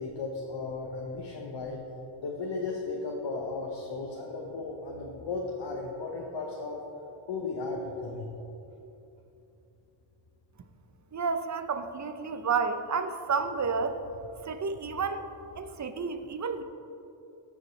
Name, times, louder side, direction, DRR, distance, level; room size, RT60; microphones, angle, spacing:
voice 1, 0.0-1.8 2.2-6.8 7.3-8.3, left 3 dB, 60° left, -1 dB, 1.0 m, -35 dB
voice 2, 11.1-14.0 14.4-15.3 15.6-16.6, right 5 dB, 35° right, 9 dB, 0.6 m, -30 dB
14.5 x 5.3 x 3.3 m, 2.9 s
cardioid pair, 75°, 49 cm